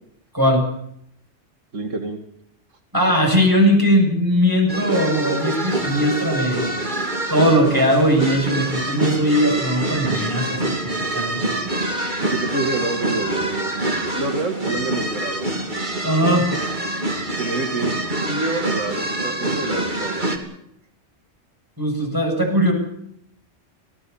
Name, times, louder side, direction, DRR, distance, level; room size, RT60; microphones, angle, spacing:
voice 1, 0.3-0.6 2.9-6.6 7.3-10.7 11.1-11.4 16.0-16.5 21.8-22.7, equal, 15° right, 1 dB, 8.0 m, -19 dB
voice 2, 1.7-2.2 12.2-13.8 14.2-15.5 17.4-17.9 18.3-20.3, right 3 dB, 85° right, 6 dB, 2.5 m, -27 dB
sound 1, 4.7-20.4, right 1 dB, 40° right, 3.1 m, -25 dB
25.5 x 17.5 x 7.2 m, 0.73 s
omnidirectional pair, 1.3 m